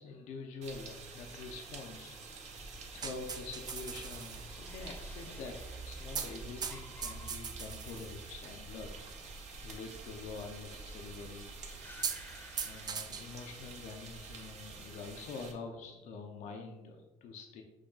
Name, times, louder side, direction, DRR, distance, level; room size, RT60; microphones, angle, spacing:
voice 1, 0.0-2.7 2.9-5.6 5.8-9.0 9.6-11.5 12.6-17.6, left 4 dB, 75° left, 3 dB, 0.5 m, -46 dB
sound 1, 0.6-15.5, right 5 dB, 70° right, 0.8 m, -49 dB
sound 2, 0.7-13.8 14.1-14.6, left 2 dB, 15° left, 0.6 m, -58 dB
sound 3, 2.5-14.9, right 5 dB, 35° right, 0.4 m, -44 dB
6.0 x 2.3 x 3.8 m, 1.2 s
cardioid pair, 95°, 12 cm